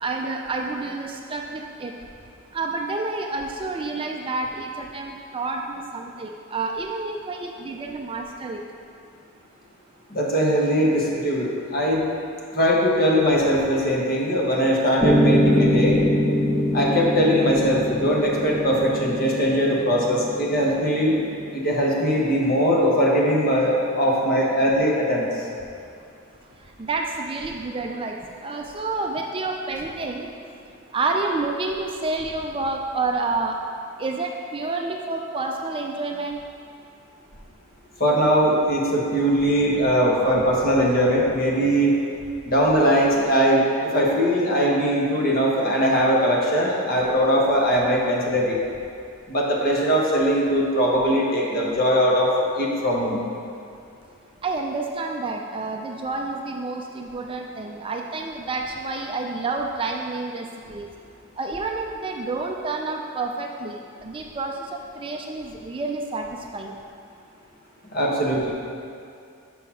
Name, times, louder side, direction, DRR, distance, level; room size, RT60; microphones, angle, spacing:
voice 1, 0.0-1.9 2.5-8.6 26.8-30.3 30.9-33.6 34.0-36.4 54.4-60.9 61.4-66.8, right 3 dB, 25° right, 2 dB, 0.4 m, -29 dB
voice 2, 10.1-12.0 12.5-16.0 16.7-21.1 21.5-25.3 38.0-42.0 42.4-48.6 49.3-53.2 67.9-68.5, equal, 45° left, -3 dB, 1.3 m, -20 dB
Piano, 15.0-23.1, equal, ahead, 0.8 m, -24 dB
6.6 x 6.1 x 5.7 m, 2.4 s
head